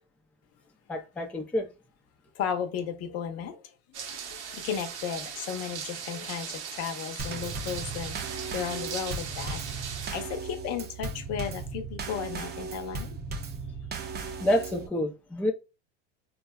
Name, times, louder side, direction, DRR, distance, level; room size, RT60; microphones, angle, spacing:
voice 1, 0.9-1.7 14.4-15.5, left 1 dB, 5° left, 0.4 m, -28 dB
voice 2, 2.3-3.7 4.0-9.6 9.9-13.2, left 8 dB, 45° left, 0.7 m, -35 dB
sound 1, 3.9-10.1, right 7 dB, 85° right, 0.9 m, -39 dB
Drum kit / Snare drum / Bass drum, 7.2-14.9, right 4 dB, 30° right, 0.7 m, -37 dB
3.7 x 2.2 x 2.2 m
supercardioid pair, 105°, 34 cm